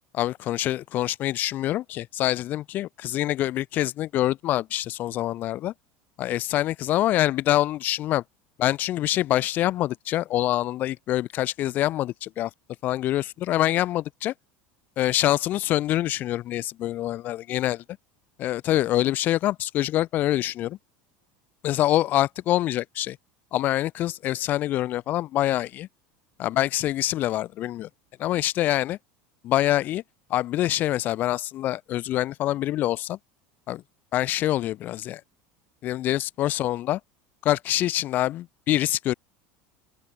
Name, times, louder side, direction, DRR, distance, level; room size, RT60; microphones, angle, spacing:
voice 1, 0.1-5.7 6.2-8.2 8.6-12.5 12.8-14.3 15.0-17.8 18.4-20.8 21.6-23.2 23.5-25.9 26.4-27.9 28.2-29.0 29.4-30.0 30.3-33.2 33.7-33.8 34.1-35.2 35.8-37.0 37.4-39.1, left 14 dB, 35° left, 1.4 m, -25 dB
open air
cardioid pair, 175°, 5 cm